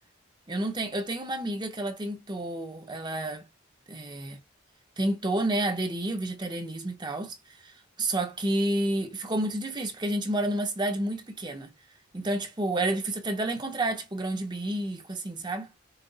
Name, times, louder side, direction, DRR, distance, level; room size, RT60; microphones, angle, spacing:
voice 1, 0.5-3.5 3.9-4.4 5.0-7.4 7.6-7.7 8.0-11.7 12.1-15.7, right 1 dB, 20° right, 0.8 m, -30 dB
5.5 x 2.1 x 3.9 m
head